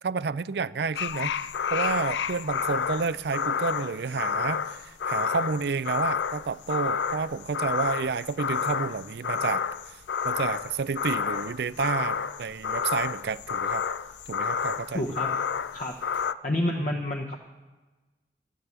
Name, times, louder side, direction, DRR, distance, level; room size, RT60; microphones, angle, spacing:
voice 1, 0.0-9.6 9.9-13.8 14.3-15.0 16.8-16.9, right 5 dB, 65° right, 17 dB, 0.5 m, -30 dB
sound 1, 0.9-16.3, left 7 dB, 80° left, 0.4 m, -30 dB
voice 2, 14.9-15.3 15.7-16.0 16.4-17.4, left 1 dB, 45° left, 1 dB, 1.0 m, -28 dB
12.0 x 10.0 x 8.1 m, 1.2 s
head